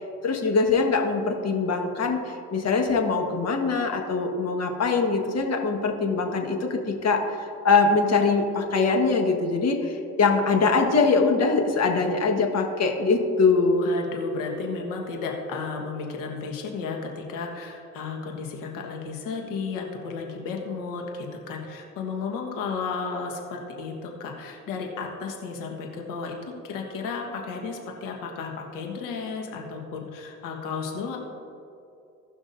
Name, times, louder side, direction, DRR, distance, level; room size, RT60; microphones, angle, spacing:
voice 1, 0.2-13.9, left 4 dB, 55° left, 3 dB, 1.6 m, -23 dB
voice 2, 13.8-31.2, left 4 dB, 90° left, 1 dB, 1.5 m, -33 dB
17.5 x 5.9 x 2.7 m, 2.7 s
supercardioid pair, 65°, 31 cm